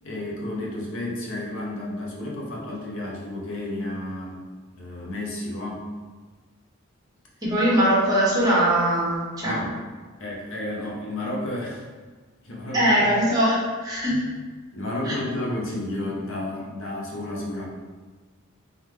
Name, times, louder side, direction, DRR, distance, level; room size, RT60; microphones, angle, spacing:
voice 1, 0.0-4.4 4.8-5.9 9.4-9.8 10.2-11.9 12.4-13.1 14.1-14.2 14.7-17.7, left 1 dB, 65° left, -3 dB, 0.9 m, -31 dB
voice 2, 7.4-9.6 12.7-14.2 15.0-15.1, equal, 20° right, -7 dB, 1.2 m, -21 dB
3.7 x 3.5 x 3.2 m, 1.4 s
head